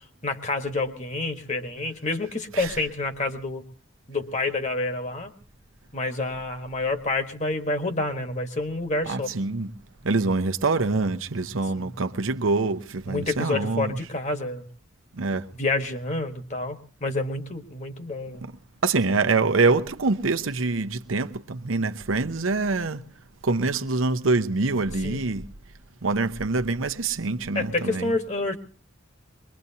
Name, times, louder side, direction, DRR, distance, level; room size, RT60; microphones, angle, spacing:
voice 1, 0.2-3.6 4.1-5.3 5.9-9.3 11.8-11.9 13.1-14.7 15.6-18.4 25.0-25.2 27.5-28.6, left 2 dB, 35° left, 1.4 m, -28 dB
voice 2, 9.1-9.7 10.0-14.0 15.1-15.5 18.4-18.5 18.8-23.0 23.4-25.5 26.0-28.1, right 3 dB, 85° right, 0.8 m, -25 dB
23.0 x 21.5 x 2.8 m
head